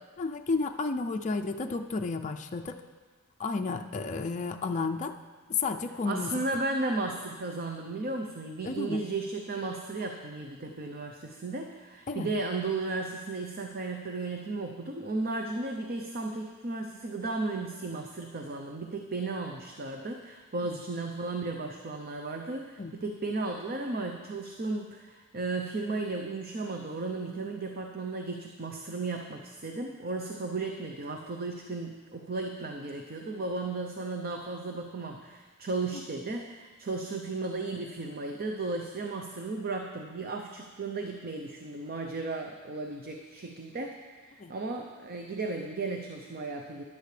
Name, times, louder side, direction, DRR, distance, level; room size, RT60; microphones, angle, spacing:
voice 1, 0.2-2.8 3.4-5.1 5.5-6.3 8.6-9.0 12.1-12.3 20.6-20.8 22.8-23.0 44.4-44.6, left 4 dB, 35° left, 4 dB, 0.4 m, -32 dB
voice 2, 6.1-46.8, right 3 dB, 45° right, 3 dB, 0.7 m, -35 dB
15.0 x 11.0 x 3.3 m, 1.4 s
head